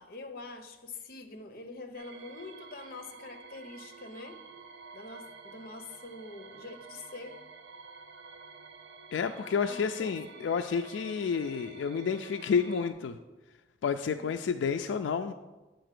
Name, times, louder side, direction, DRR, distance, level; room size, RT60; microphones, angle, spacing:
voice 1, 0.0-4.5 4.9-7.4 9.7-10.5 14.0-14.4, left 3 dB, 55° left, 0.7 m, -45 dB
sound 1, 1.9-12.9, right 4 dB, 65° right, 0.6 m, -50 dB
voice 2, 9.1-13.2 13.8-15.3, left 6 dB, 90° left, 0.3 m, -30 dB
7.8 x 4.0 x 6.6 m
head